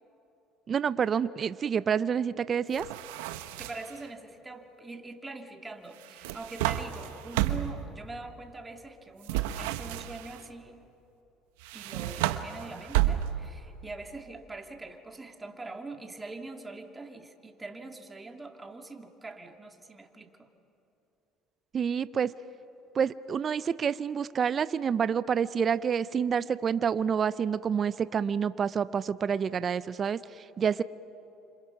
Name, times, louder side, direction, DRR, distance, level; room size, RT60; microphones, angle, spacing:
voice 1, 0.7-2.8 21.7-22.3 22.9-30.8, right 7 dB, 40° right, 15 dB, 0.6 m, -28 dB
sound 1, 2.7-4.0 6.0-7.9 9.2-10.4 11.6-13.6, right 13 dB, 90° right, 1.0 m, -31 dB
voice 2, 3.2-10.8 11.7-20.5, right 3 dB, 20° right, 4 dB, 2.5 m, -43 dB
29.5 x 26.5 x 5.9 m, 2.9 s
supercardioid pair, 85°, 0 cm